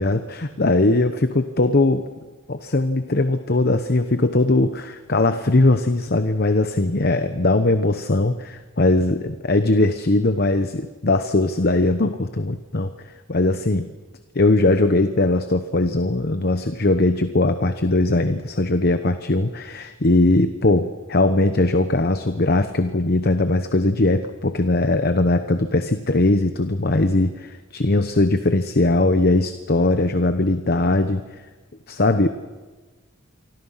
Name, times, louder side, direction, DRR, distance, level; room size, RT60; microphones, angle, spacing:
voice 1, 0.0-2.1 2.5-13.9 14.3-31.2 31.9-32.3, left 2 dB, 50° left, 9 dB, 1.0 m, -20 dB
28.0 x 25.0 x 5.8 m, 1.3 s
head